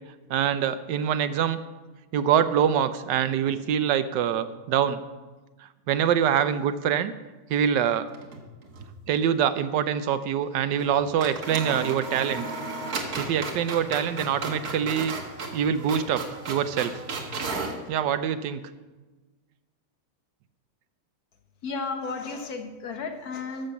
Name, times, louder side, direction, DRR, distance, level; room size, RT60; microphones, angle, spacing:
voice 1, 0.3-1.6 2.1-5.0 5.9-7.1 7.5-8.1 9.1-12.5 13.2-15.2 15.5-16.9 17.9-18.6, right 9 dB, 85° right, 12 dB, 1.3 m, -24 dB
sound 1, 8.1-8.9 9.2-9.3 10.8-10.9 11.2-17.8, right 3 dB, 60° right, 1.9 m, -34 dB
voice 2, 21.6-23.7, left 4 dB, 60° left, 6 dB, 1.7 m, -33 dB
13.0 x 6.6 x 7.0 m, 1.2 s
omnidirectional pair, 1.9 m